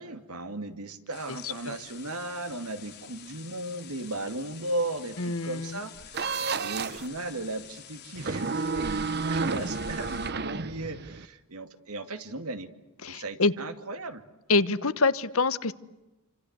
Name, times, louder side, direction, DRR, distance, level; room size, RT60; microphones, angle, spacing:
voice 1, 0.0-12.7 13.1-14.2, right 2 dB, 90° right, 9 dB, 2.3 m, -36 dB
sound 1, 1.1-10.3, left 5 dB, 50° left, 4.0 m, -47 dB
voice 2, 1.4-1.7 5.2-5.8 13.0-13.5 14.5-15.7, left 3 dB, 70° left, 14 dB, 1.2 m, -26 dB
sound 2, 6.1-7.1 8.2-11.3, right 4 dB, 45° right, 0.9 m, -31 dB
28.5 x 25.5 x 8.1 m, 1.0 s
head